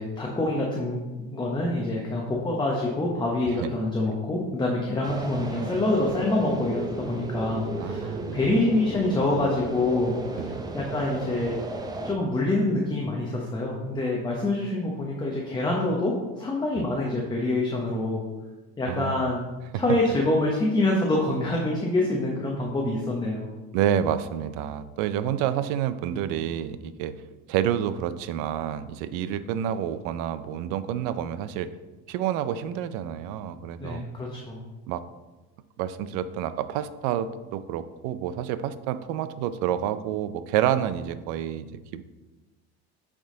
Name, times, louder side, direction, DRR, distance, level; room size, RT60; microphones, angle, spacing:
voice 1, 0.0-11.6 12.0-18.2 18.8-19.4 19.7-23.5 33.8-34.6, left 2 dB, 15° left, -2 dB, 0.8 m, -26 dB
sound 1, 5.0-12.1, right 2 dB, 15° right, 0.5 m, -34 dB
voice 2, 7.8-8.4 10.4-10.6 16.7-16.8 18.9-19.3 19.7-20.0 23.7-27.2 27.5-31.7 32.1-34.0 34.9-35.0 35.8-42.0, right 10 dB, 75° right, 13 dB, 0.5 m, -29 dB
7.8 x 3.6 x 3.7 m, 1.2 s
cardioid pair, 120°, 31 cm